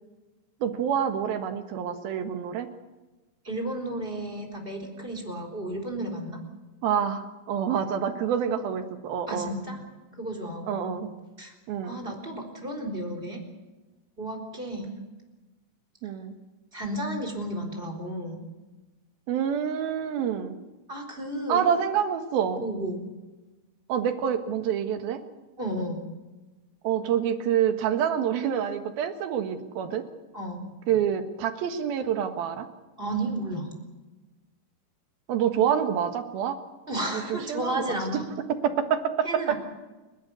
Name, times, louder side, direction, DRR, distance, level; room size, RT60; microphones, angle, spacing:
voice 1, 0.6-2.7 6.8-7.2 7.5-9.5 10.7-11.1 11.7-12.0 16.0-16.4 19.3-20.6 21.5-22.6 23.9-25.2 26.8-30.1 30.9-32.7 35.3-36.6 37.1-38.0 38.5-39.5, right 8 dB, 85° right, 7 dB, 3.4 m, -27 dB
voice 2, 3.4-6.4 9.3-9.8 10.1-11.0 11.4-11.5 11.8-13.4 14.2-15.0 16.7-18.5 20.9-21.7 22.6-23.0 25.6-26.0 30.3-30.7 33.0-33.7 36.9-38.3 39.2-39.5, right 1 dB, 15° right, 1 dB, 3.8 m, -33 dB
30.0 x 11.5 x 9.6 m, 1.2 s
omnidirectional pair, 4.2 m